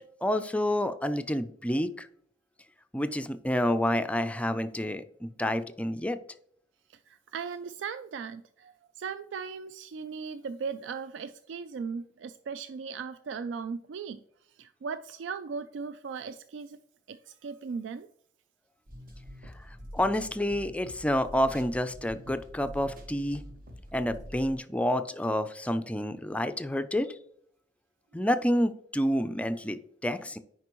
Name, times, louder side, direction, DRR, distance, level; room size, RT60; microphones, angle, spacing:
voice 1, 0.0-2.1 2.9-6.2 19.9-23.4 23.9-27.2 28.1-30.4, left 1 dB, 5° left, 10 dB, 0.4 m, -29 dB
voice 2, 6.9-14.2 14.5-16.8 17.1-18.1, right 5 dB, 75° right, 12 dB, 0.3 m, -38 dB
sound 1, 18.9-24.6, equal, 50° right, 1.2 m, -46 dB
9.4 x 5.2 x 3.0 m, 0.67 s
head